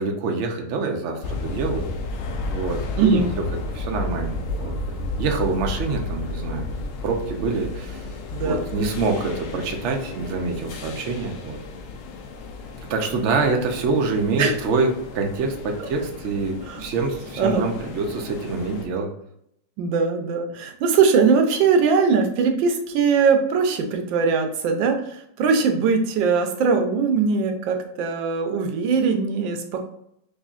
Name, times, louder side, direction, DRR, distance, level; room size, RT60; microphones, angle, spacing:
voice 1, 0.0-1.9 2.5-3.2 3.5-4.7 5.2-6.7 7.0-8.1 8.4-11.6 12.9-14.9 15.1-19.1, right 4 dB, 65° right, 2 dB, 0.7 m, -25 dB
sound 1, 1.2-18.9, left 3 dB, 80° left, 0.7 m, -33 dB
voice 2, 3.0-3.3 8.3-8.6 14.4-14.5 15.8-15.9 16.7-16.9 17.4-17.7 19.8-29.8, right 5 dB, 85° right, 5 dB, 1.4 m, -21 dB
5.1 x 2.7 x 2.4 m, 0.75 s
omnidirectional pair, 2.0 m